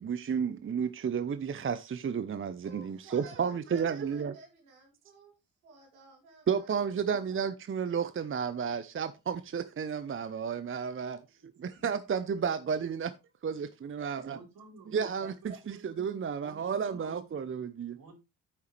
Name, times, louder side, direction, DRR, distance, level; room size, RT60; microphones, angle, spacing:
voice 1, 0.0-4.3 6.5-13.1 13.4-14.4 14.9-15.3 15.7-18.0, right 7 dB, 30° right, 0.8 m, -32 dB
voice 2, 2.6-5.3 5.6-7.5 11.6-11.8 14.0-14.1 15.2-15.6, right 3 dB, 85° right, 2.6 m, -53 dB
voice 3, 11.3-11.7 14.0-15.8 16.3-17.3 18.0-18.1, right 3 dB, 55° right, 4.1 m, -53 dB
9.5 x 7.4 x 3.3 m
hypercardioid pair, 45°, 41 cm